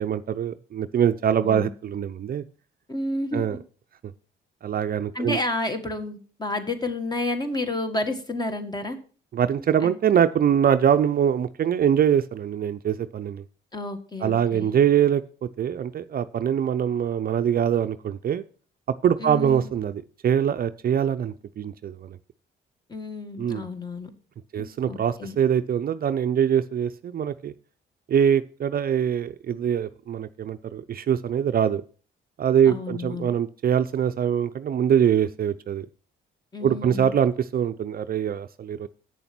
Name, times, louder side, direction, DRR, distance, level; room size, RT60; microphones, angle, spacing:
voice 1, 0.0-2.4 3.3-3.6 4.6-5.4 9.3-13.4 14.2-18.4 19.0-22.2 23.4-23.6 24.5-27.5 28.1-31.8 32.4-35.9 36.6-38.9, right 9 dB, 50° right, 11 dB, 0.5 m, -23 dB
voice 2, 2.9-3.6 5.1-9.0 9.8-10.0 13.7-14.7 19.2-19.7 22.9-24.1 24.6-25.3 32.6-33.3 36.5-37.1, left 2 dB, 20° left, 7 dB, 1.6 m, -30 dB
8.5 x 7.0 x 6.0 m, 0.41 s
cardioid pair, 90°, 20 cm